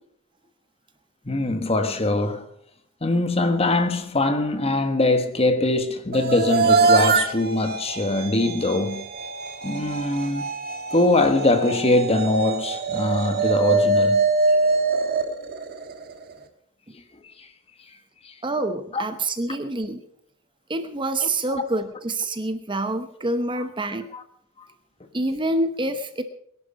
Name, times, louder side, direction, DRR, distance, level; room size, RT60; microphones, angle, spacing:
voice 1, 1.2-2.4 3.0-9.1 9.6-10.5 10.9-14.2 17.4-17.5 18.2-18.3 18.9-19.0 23.5-23.6 24.1-24.2, left 2 dB, 25° left, 1.4 m, -22 dB
sound 1, 6.1-16.3, right 3 dB, 45° right, 1.5 m, -23 dB
voice 2, 18.4-20.0 20.7-24.1 25.1-26.2, right 2 dB, 20° right, 0.9 m, -26 dB
21.5 x 11.5 x 5.1 m
head